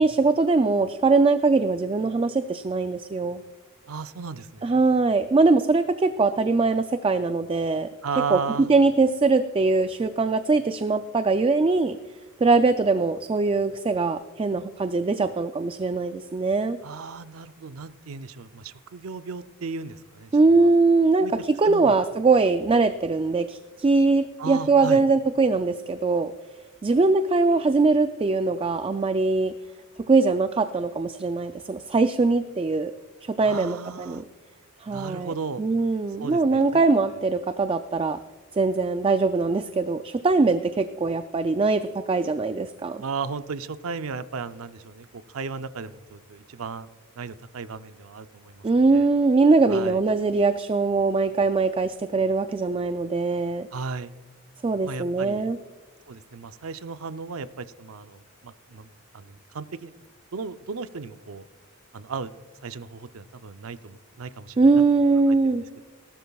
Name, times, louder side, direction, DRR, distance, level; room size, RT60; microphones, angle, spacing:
voice 1, 0.0-3.4 4.6-7.9 8.3-8.4 8.7-12.0 12.4-16.8 20.3-26.3 26.8-29.5 30.1-32.9 33.2-34.2 34.8-38.2 38.5-43.0 48.6-53.7 54.6-55.6 64.6-65.7, right 3 dB, 25° right, 10 dB, 0.3 m, -22 dB
voice 2, 3.9-4.8 8.0-8.7 16.8-20.3 20.6-20.7 21.2-21.3 21.6-22.0 24.4-25.0 33.4-34.2 34.9-35.6 36.2-36.8 43.0-46.9 47.2-48.7 48.9-49.1 49.7-50.0 53.7-54.1 54.8-55.5 56.1-59.9 60.3-61.4 61.9-62.3 62.6-64.8 65.3-65.8, right 5 dB, 80° right, 12 dB, 0.5 m, -35 dB
18.5 x 12.5 x 2.3 m, 1.3 s
head